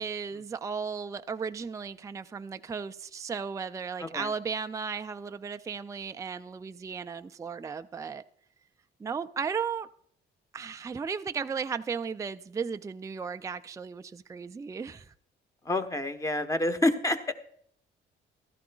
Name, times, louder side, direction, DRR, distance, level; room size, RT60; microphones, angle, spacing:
voice 1, 0.0-8.2 9.0-9.9 10.5-15.1, right 6 dB, 15° right, 0.3 m, -35 dB
voice 2, 4.0-4.3 15.7-17.3, left 1 dB, 15° left, 1.0 m, -28 dB
15.5 x 12.5 x 2.3 m
cardioid pair, 90°, 20 cm